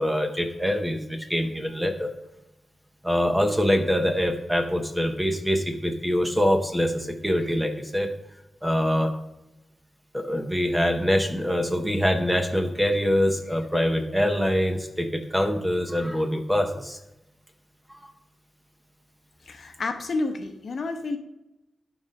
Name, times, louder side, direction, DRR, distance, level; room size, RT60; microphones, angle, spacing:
voice 1, 0.0-2.1 3.0-8.1 8.6-9.1 10.1-17.0 17.9-18.1, equal, 5° right, 5 dB, 0.7 m, -24 dB
voice 2, 19.5-21.2, left 3 dB, 50° left, 6 dB, 0.8 m, -30 dB
11.5 x 4.0 x 5.2 m, 0.91 s
wide cardioid pair, 155°, 0 cm